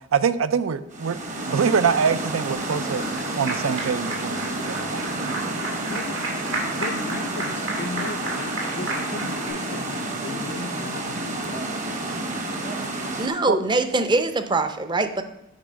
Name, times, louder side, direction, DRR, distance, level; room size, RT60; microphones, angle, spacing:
voice 1, 0.1-1.2 1.5-3.0 3.3-5.0 13.5-13.6, right 6 dB, 90° right, 14 dB, 0.5 m, -24 dB
sound 1, 0.9-13.3, right 2 dB, 40° right, 1.0 m, -30 dB
Applause, 2.5-9.5, right 2 dB, 70° right, 2.3 m, -33 dB
voice 2, 5.8-6.3 6.7-11.8, left 4 dB, 60° left, 12 dB, 0.4 m, -37 dB
voice 3, 13.2-15.2, right 2 dB, 20° right, 9 dB, 0.5 m, -23 dB
8.9 x 4.7 x 5.1 m, 0.94 s
head